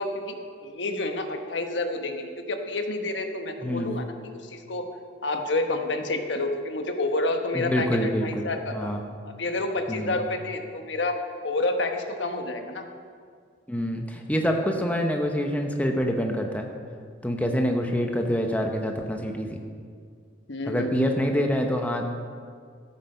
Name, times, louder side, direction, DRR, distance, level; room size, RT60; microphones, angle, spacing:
voice 1, 0.0-4.1 4.4-4.9 5.2-8.9 9.3-11.2 11.4-12.9 20.5-21.1, left 2 dB, 80° left, 5 dB, 1.1 m, -29 dB
voice 2, 7.5-9.1 9.9-10.2 13.7-16.7 17.2-19.6 20.7-22.0, equal, 10° left, 3 dB, 0.8 m, -26 dB
13.5 x 8.4 x 5.5 m, 2.1 s
head